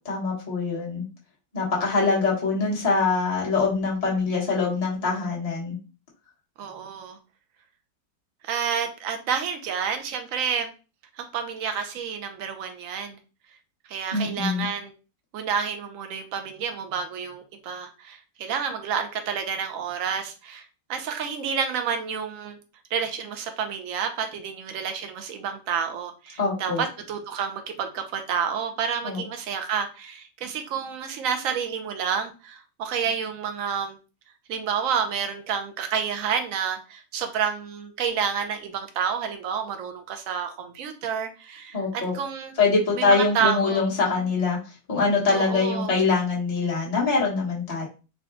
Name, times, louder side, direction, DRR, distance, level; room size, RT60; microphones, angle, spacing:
voice 1, 0.0-1.0 1.5-5.7 14.1-14.7 26.4-26.8 29.0-29.2 41.7-42.1 42.6-44.6 44.9-47.9, left 4 dB, 25° left, -5 dB, 1.2 m, -24 dB
voice 2, 6.6-7.2 8.4-10.7 11.2-13.2 13.9-14.9 15.3-20.6 20.9-22.6 22.9-34.0 34.5-42.5 43.0-43.9 45.3-45.9, right 7 dB, 60° right, 6 dB, 0.9 m, -29 dB
3.9 x 2.2 x 3.6 m, 0.33 s
omnidirectional pair, 1.9 m